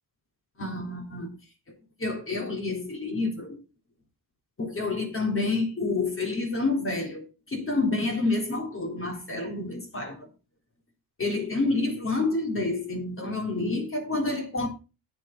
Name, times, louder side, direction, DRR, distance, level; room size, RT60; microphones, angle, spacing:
voice 1, 0.6-1.4 1.7-3.6 4.6-10.3 11.2-14.7, left 3 dB, 30° left, 3.5 m, -29 dB
10.5 x 8.7 x 3.8 m
cardioid pair, 80°, 41 cm